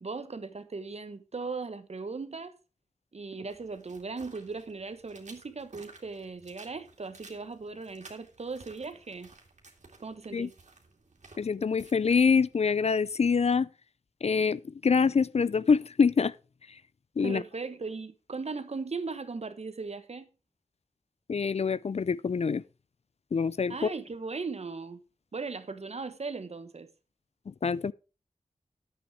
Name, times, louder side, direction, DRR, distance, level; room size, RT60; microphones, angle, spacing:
voice 1, 0.0-2.5 3.1-9.3 10.0-10.5 17.2-20.3 23.7-25.0 25.3-26.9, right 4 dB, 60° right, 1.2 m, -38 dB
sound 1, 3.5-13.5, right 3 dB, 75° right, 2.4 m, -56 dB
voice 2, 11.4-13.7 14.2-16.3 17.2-17.4 21.3-22.6 23.3-23.7 27.6-27.9, left 5 dB, 60° left, 0.5 m, -25 dB
10.0 x 8.1 x 4.8 m
wide cardioid pair, 60°, 12 cm